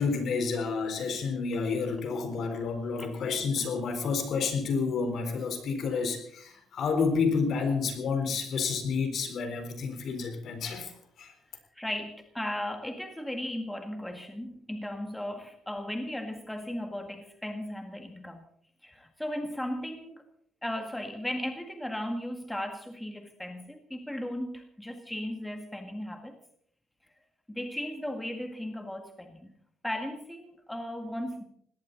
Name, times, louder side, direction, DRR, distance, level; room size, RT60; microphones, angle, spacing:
voice 1, 0.0-10.9 11.2-11.3, left 5 dB, 55° left, 7 dB, 4.0 m, -30 dB
voice 2, 11.8-18.4 18.8-20.2 20.6-26.4 27.5-29.5 29.8-31.4, left 1 dB, 5° left, 5 dB, 1.9 m, -36 dB
19.5 x 17.5 x 4.1 m, 0.64 s
cardioid pair, 110°, 0 cm